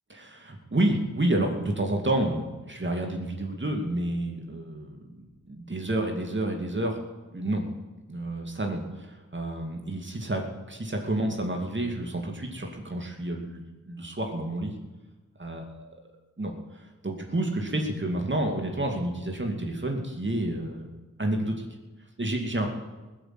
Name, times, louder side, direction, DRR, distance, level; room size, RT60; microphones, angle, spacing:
voice 1, 0.1-7.0 7.3-7.7 8.1-14.7 15.4-15.9 16.4-20.9 21.2-21.7 22.2-22.7, right 1 dB, 40° right, 2 dB, 2.6 m, -30 dB
20.0 x 8.1 x 7.9 m, 1.2 s
cardioid pair, 55°, 30 cm